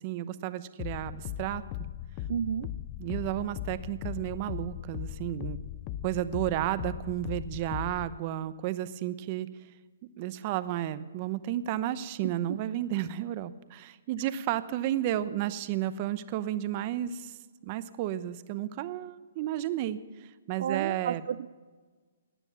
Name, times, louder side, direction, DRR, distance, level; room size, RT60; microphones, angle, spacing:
voice 1, 0.0-1.6 3.0-5.6 6.0-9.5 10.2-17.4 17.6-21.2, right 13 dB, 35° right, 14 dB, 0.8 m, -32 dB
sound 1, 0.8-8.2, left 12 dB, 30° left, 0.5 m, -38 dB
voice 2, 2.3-2.7 12.2-12.6 20.6-21.5, right 8 dB, 60° right, 16 dB, 0.4 m, -32 dB
18.0 x 9.7 x 7.1 m, 1.4 s
hypercardioid pair, 145°, 0 cm